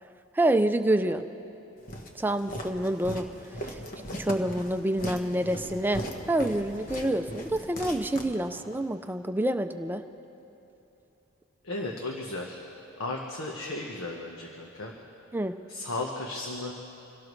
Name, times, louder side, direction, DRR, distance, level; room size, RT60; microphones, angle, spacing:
voice 1, 0.3-1.2 2.1-3.3 3.6-3.8 4.2-6.0 6.3-10.0 15.3-15.5, right 1 dB, 10° right, 8 dB, 0.5 m, -27 dB
Walk footsteps, 1.9-8.8, equal, 40° left, 1.3 m, -39 dB
voice 2, 11.6-12.6 13.0-14.9 15.7-16.7, left 2 dB, 85° left, 0 dB, 1.3 m, -35 dB
26.0 x 17.5 x 3.2 m, 2.9 s
head